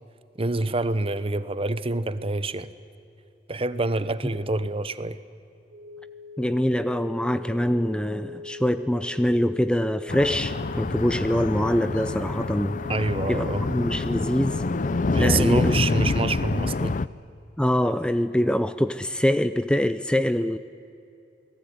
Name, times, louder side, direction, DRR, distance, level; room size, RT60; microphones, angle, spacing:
voice 1, 0.4-2.7 3.5-5.2 12.9-13.6 15.1-17.0, right 2 dB, 35° right, 14 dB, 1.0 m, -27 dB
sound 1, 5.7-15.5, left 3 dB, 55° right, 2.5 m, -41 dB
voice 2, 6.4-12.7 13.3-14.6 15.2-15.7 17.6-20.6, equal, 5° left, 11 dB, 0.6 m, -24 dB
sound 2, 10.1-17.1, left 3 dB, 45° left, 0.5 m, -26 dB
28.5 x 19.0 x 9.6 m, 2.7 s
head